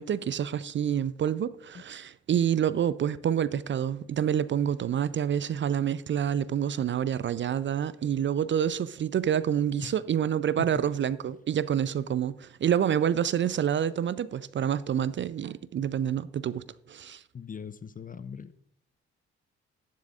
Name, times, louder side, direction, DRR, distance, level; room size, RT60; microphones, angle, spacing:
voice 1, 0.0-17.2, right 9 dB, 35° right, 0.5 m, -28 dB
voice 2, 17.3-18.5, left 6 dB, 25° left, 0.6 m, -40 dB
13.0 x 10.5 x 2.4 m
hypercardioid pair, 40°, 32 cm